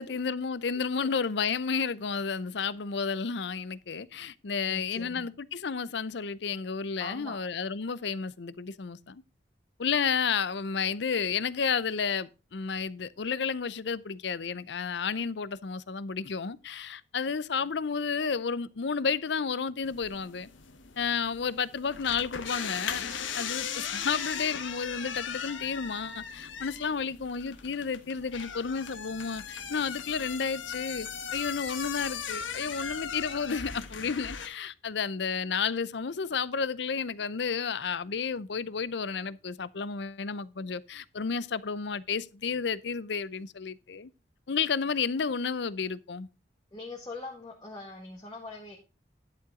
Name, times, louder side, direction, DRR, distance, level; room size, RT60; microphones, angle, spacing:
voice 1, 0.0-9.2 9.8-20.5 21.0-23.1 23.3-44.1 44.5-46.3, left 5 dB, 65° left, 0.6 m, -31 dB
voice 2, 4.7-5.3 7.0-7.4 46.7-48.8, left 2 dB, 20° left, 1.7 m, -42 dB
sound 1, 19.8-34.5, left 7 dB, 85° left, 1.4 m, -38 dB
11.5 x 7.6 x 3.7 m
head